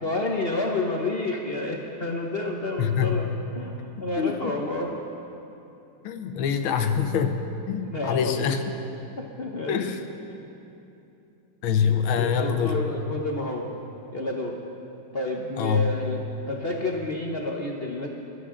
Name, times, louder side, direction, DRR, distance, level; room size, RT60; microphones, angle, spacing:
voice 1, 0.0-5.0 7.9-8.6 9.2-9.8 10.3-10.5 12.1-13.7 14.1-14.6 15.1-18.1, left 2 dB, 50° left, 0 dB, 0.7 m, -30 dB
voice 2, 2.8-3.1 4.2-4.5 6.0-7.4 7.7-8.6 9.7-10.0 11.6-12.8 15.6-15.8, left 7 dB, 75° left, 7 dB, 1.6 m, -24 dB
20.5 x 12.5 x 3.8 m, 2.8 s
omnidirectional pair, 2.3 m